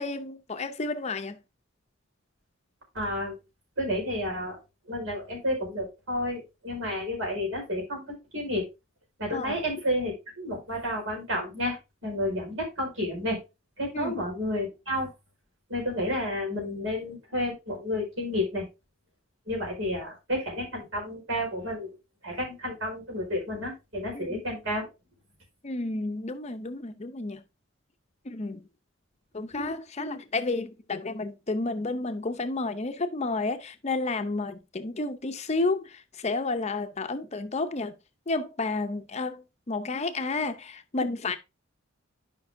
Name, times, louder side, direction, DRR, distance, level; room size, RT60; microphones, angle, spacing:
voice 1, 0.0-1.4 9.3-9.6 13.9-14.2 24.1-24.4 25.6-27.4 28.3-28.6 29.3-37.9 38.3-41.4, left 3 dB, 35° left, 0.6 m, -31 dB
voice 2, 2.9-3.4 3.8-4.6 4.9-8.0 8.3-8.7 9.2-11.8 12.0-13.4 13.8-15.1 15.7-18.6 19.5-21.9 22.2-24.9, left 1 dB, 75° right, 4.6 m, -31 dB
11.5 x 5.3 x 2.6 m
head